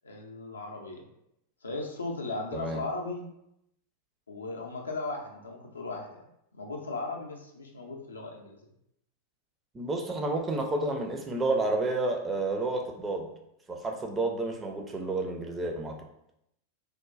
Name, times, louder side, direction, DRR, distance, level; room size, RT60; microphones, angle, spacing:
voice 1, 0.0-1.1 1.6-3.3 4.3-6.2 6.5-8.7, left 3 dB, 75° left, 1 dB, 0.4 m, -37 dB
voice 2, 9.7-13.3 13.7-16.0, right 2 dB, 20° right, 2 dB, 0.4 m, -30 dB
3.0 x 2.1 x 2.3 m, 0.78 s
figure-of-eight pair, 90°, 0 cm